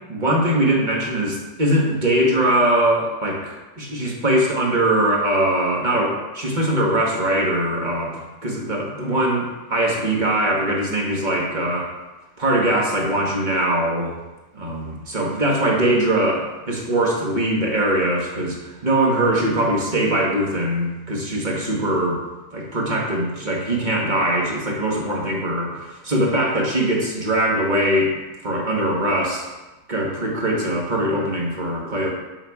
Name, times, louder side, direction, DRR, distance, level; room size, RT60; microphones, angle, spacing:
voice 1, 0.1-11.9 12.4-14.2 14.5-22.2 22.5-28.1 28.4-29.5 29.9-32.1, right 1 dB, 40° right, -2 dB, 1.5 m, -21 dB
6.2 x 6.2 x 4.7 m, 1.1 s
omnidirectional pair, 1.3 m